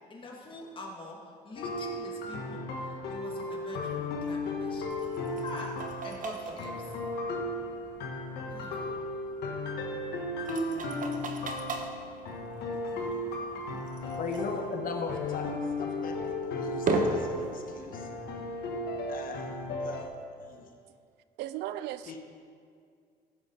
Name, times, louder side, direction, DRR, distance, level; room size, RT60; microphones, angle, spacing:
voice 1, 0.1-4.9 5.4-7.0 8.5-9.0 10.4-10.9 12.9-13.3 13.7-14.1, left 2 dB, 30° left, -1 dB, 2.1 m, -45 dB
sound 1, 1.6-20.1, left 2 dB, 75° left, 1.5 m, -35 dB
sound 2, 3.9-19.7, right 3 dB, 50° right, 1.2 m, -39 dB
voice 2, 14.2-18.1 19.1-20.1 20.4-20.7 22.1-22.2, left 4 dB, 55° left, 3 dB, 1.3 m, -39 dB
voice 3, 21.4-22.2, right 13 dB, 85° right, 14 dB, 0.5 m, -36 dB
15.5 x 7.5 x 4.1 m, 2.2 s
cardioid pair, 110°, 17 cm